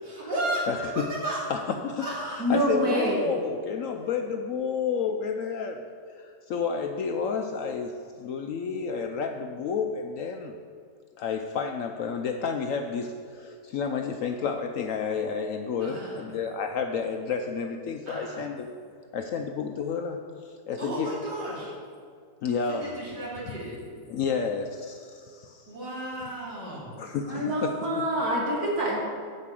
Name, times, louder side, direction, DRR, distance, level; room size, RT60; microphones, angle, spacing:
voice 1, 0.0-0.7 0.9-1.4 2.0-2.5 15.8-16.3 18.0-18.4 20.8-21.7 22.7-23.8 25.7-26.9, right 1 dB, 85° right, -7 dB, 3.3 m, -34 dB
voice 2, 0.7-1.0 1.5-2.1 2.5-5.8 6.1-10.5 11.2-18.7 19.1-20.2 20.4-21.1 22.4-22.9 24.1-25.7 27.0-28.0, left 6 dB, 70° left, 5 dB, 0.8 m, -30 dB
voice 3, 2.4-3.3 27.3-29.0, equal, 65° right, -3 dB, 2.1 m, -26 dB
7.9 x 5.5 x 7.5 m, 2.2 s
omnidirectional pair, 1.8 m